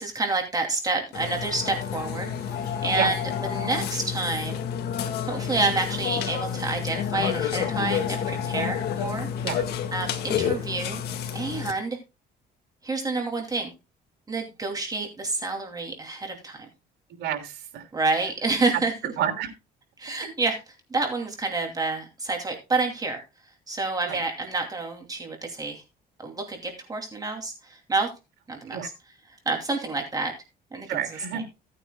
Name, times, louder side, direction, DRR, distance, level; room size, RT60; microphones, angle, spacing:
voice 1, 0.0-4.6 5.2-9.3 9.9-11.0 11.3-12.0 12.8-13.7 14.3-16.7 17.9-19.1 20.0-23.2 23.7-25.8 26.2-28.1 28.5-28.9 29.5-30.3 30.7-31.0 31.3-31.4, right 3 dB, 20° right, 2 dB, 2.6 m, -28 dB
Burping eructation, 1.1-11.7, left 8 dB, 75° left, 1.8 m, -29 dB
voice 2, 17.2-17.9 19.2-19.5 24.1-24.2 28.7-28.9 30.9-31.4, right 9 dB, 80° right, 4 dB, 3.2 m, -29 dB
17.5 x 9.2 x 2.2 m, 0.27 s
cardioid pair, 110°, 17 cm